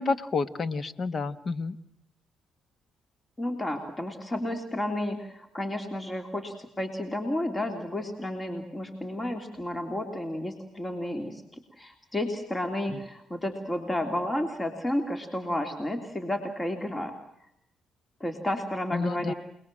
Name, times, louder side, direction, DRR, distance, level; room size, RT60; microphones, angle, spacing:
voice 1, 0.0-1.8 12.9-13.0 18.9-19.3, left 4 dB, 50° left, 13 dB, 1.5 m, -29 dB
voice 2, 3.4-17.1 17.4-17.5 18.2-19.3, left 1 dB, 25° left, 5 dB, 3.2 m, -32 dB
29.0 x 20.5 x 7.6 m, 0.80 s
supercardioid pair, 60°, 0 cm